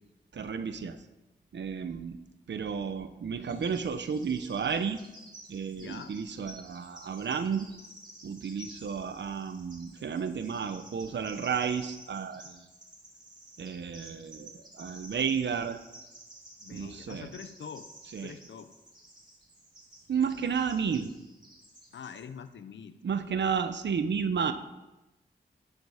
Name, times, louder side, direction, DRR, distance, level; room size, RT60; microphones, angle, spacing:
voice 1, 0.3-1.0 1.5-2.2 2.5-5.0 5.5-7.7 8.2-12.6 13.6-15.8 16.7-17.3 18.1-18.4 20.1-21.1 23.0-24.5, right 6 dB, 75° right, 10 dB, 0.8 m, -32 dB
Bird vocalization bird call bird song, 3.5-22.2, right 1 dB, 20° right, 3.4 m, -52 dB
voice 2, 5.7-6.1 16.6-17.9 18.2-18.7 21.9-23.0, left 7 dB, 85° left, 12 dB, 0.7 m, -44 dB
11.0 x 9.7 x 5.0 m, 1.0 s
cardioid pair, 45°, 19 cm